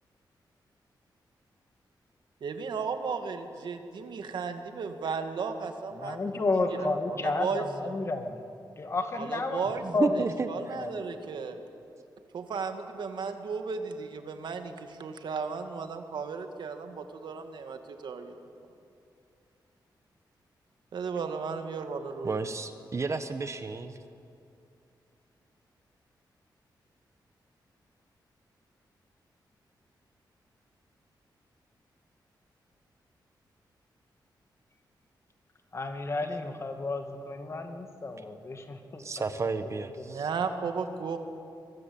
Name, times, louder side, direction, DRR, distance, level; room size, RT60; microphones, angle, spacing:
voice 1, 2.4-8.0 9.1-9.9 10.1-11.6 12.3-18.4 20.9-22.4 40.0-41.2, right 5 dB, 75° right, 6 dB, 2.1 m, -35 dB
voice 2, 6.0-8.4 8.8-10.1 10.7-10.9 35.7-39.3, left 3 dB, 35° left, 6 dB, 2.1 m, -32 dB
voice 3, 9.8-10.8 22.2-24.0 39.0-40.3, right 4 dB, 40° right, 9 dB, 1.2 m, -32 dB
24.5 x 22.0 x 8.7 m, 2.6 s
wide cardioid pair, 125°, 8 cm